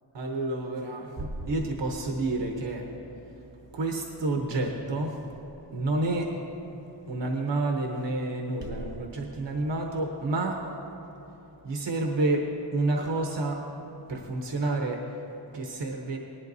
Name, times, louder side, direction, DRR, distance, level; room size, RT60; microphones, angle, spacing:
voice 1, 0.1-2.9 3.7-5.2 5.7-6.3 7.1-10.7 11.6-13.7 14.1-16.2, right 2 dB, 90° right, 1 dB, 0.9 m, -29 dB
18.0 x 11.0 x 2.7 m, 3.0 s
cardioid pair, 45°, 42 cm